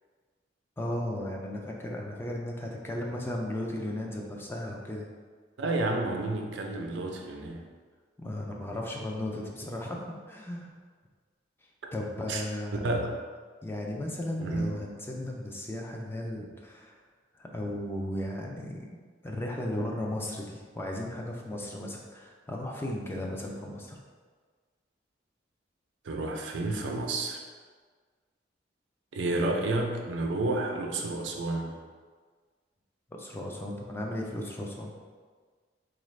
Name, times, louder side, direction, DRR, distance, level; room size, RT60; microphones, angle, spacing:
voice 1, 0.8-5.1 8.2-10.7 11.9-12.8 13.6-17.0 17.4-19.0 19.2-24.0 33.2-34.9, left 1 dB, 15° left, -1 dB, 0.4 m, -35 dB
voice 2, 5.6-7.6 12.3-12.4 12.8-13.1 14.4-14.7 26.0-27.4 29.1-31.7, right 2 dB, 80° right, 2 dB, 0.5 m, -30 dB
3.9 x 2.5 x 3.1 m, 1.5 s
head